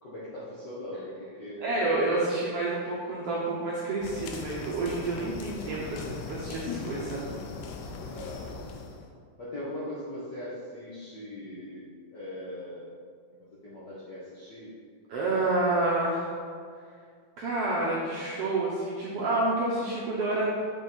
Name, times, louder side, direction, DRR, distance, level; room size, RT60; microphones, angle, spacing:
voice 1, 0.0-1.8 8.1-8.5 9.4-12.8 13.3-14.7 15.2-15.5, left 1 dB, 65° left, -9 dB, 1.1 m, -40 dB
voice 2, 1.6-7.3 15.1-16.4 17.4-20.6, right 2 dB, 75° right, -5 dB, 1.4 m, -29 dB
sound 1, 4.0-9.1, left 5 dB, 85° left, 2.1 m, -39 dB
6.6 x 4.5 x 4.4 m, 2.1 s
omnidirectional pair, 3.6 m